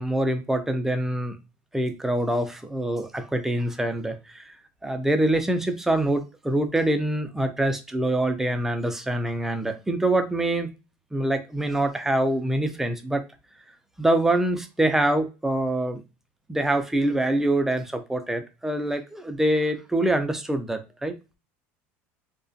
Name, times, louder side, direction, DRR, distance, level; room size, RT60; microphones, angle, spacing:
voice 1, 0.0-1.4 1.7-4.5 4.8-10.7 11.1-13.2 14.0-16.0 16.5-21.2, right 1 dB, 5° right, 0.4 m, -25 dB
2.4 x 2.1 x 2.5 m
supercardioid pair, 115°, 6 cm